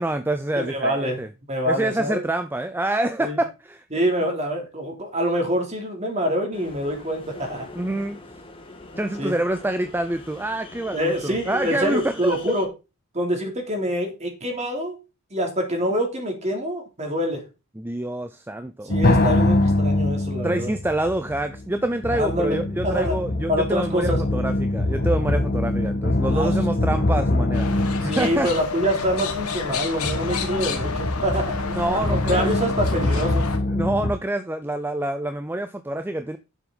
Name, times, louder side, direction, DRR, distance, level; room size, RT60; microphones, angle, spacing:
voice 1, 0.0-1.3 1.7-3.8 7.7-8.2 9.0-12.6 17.8-18.9 20.4-28.5 31.7-32.5 33.7-36.4, right 1 dB, 10° right, 0.5 m, -27 dB
voice 2, 0.6-1.2 1.5-2.2 3.2-3.4 3.9-7.7 9.2-9.3 10.9-12.7 13.1-15.0 15.3-17.4 18.8-20.7 22.1-23.2 23.5-24.2 26.3-26.5 28.0-31.5 31.9-33.4, equal, 30° right, 3.3 m, -25 dB
sound 1, 6.5-12.7, left 2 dB, 25° left, 1.8 m, -43 dB
sound 2, 18.9-34.1, left 2 dB, 40° left, 1.9 m, -24 dB
sound 3, 27.5-33.6, left 4 dB, 90° left, 1.8 m, -30 dB
10.5 x 7.3 x 4.0 m
head